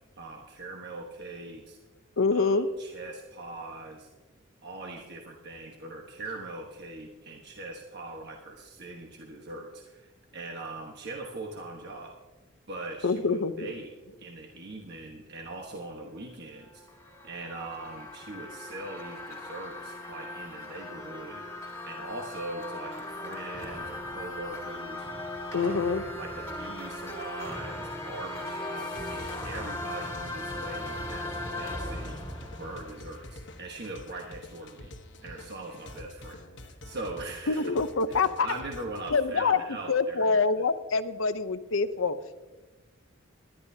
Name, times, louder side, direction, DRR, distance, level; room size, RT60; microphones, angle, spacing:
voice 1, 0.2-1.8 2.3-4.1 4.6-12.2 12.7-16.8 17.2-21.5 21.8-25.1 25.5-32.2 32.6-34.9 35.2-37.7 38.1-40.4, right 2 dB, 55° right, 0 dB, 1.3 m, -41 dB
voice 2, 2.2-2.7 13.0-13.7 25.5-26.0 37.5-38.5 39.1-39.6 39.9-42.4, left 4 dB, 75° left, 12 dB, 0.7 m, -26 dB
sound 1, 16.6-33.6, left 1 dB, 15° left, 2.0 m, -38 dB
sound 2, 28.8-39.2, left 1 dB, 60° left, 1.2 m, -47 dB
21.0 x 11.5 x 2.8 m, 1.2 s
head